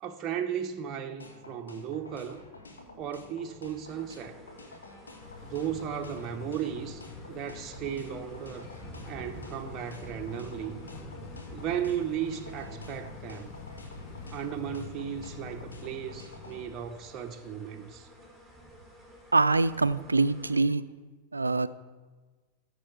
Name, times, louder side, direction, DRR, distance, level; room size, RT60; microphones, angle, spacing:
voice 1, 0.0-2.4 2.9-4.4 5.4-8.7 9.1-10.8 11.5-13.5 14.3-18.1, right 9 dB, 30° right, 0.8 m, -35 dB
sound 1, 1.2-16.6, left 2 dB, 75° left, 1.6 m, -50 dB
sound 2, 3.8-20.6, right 1 dB, 5° left, 2.8 m, -50 dB
sound 3, 5.2-17.1, left 5 dB, 50° left, 1.0 m, -46 dB
voice 2, 19.3-20.8 21.3-21.7, right 3 dB, 80° right, 0.4 m, -24 dB
14.5 x 6.7 x 4.7 m
figure-of-eight pair, 90°, 0 cm